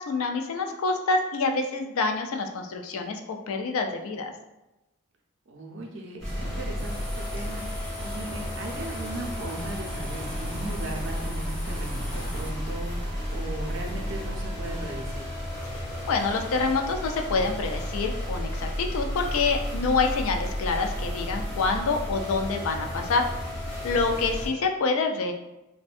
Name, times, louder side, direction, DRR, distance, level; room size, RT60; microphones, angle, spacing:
voice 1, 0.0-4.3 16.1-23.3 23.8-25.3, left 4 dB, 80° left, 4 dB, 0.3 m, -27 dB
voice 2, 5.5-15.3, right 2 dB, 60° right, 0 dB, 0.5 m, -38 dB
sound 1, 6.2-24.5, equal, 25° left, 1.0 m, -32 dB
sound 2, 6.8-12.5, equal, 5° left, 0.4 m, -42 dB
2.6 x 2.1 x 2.4 m, 0.97 s
head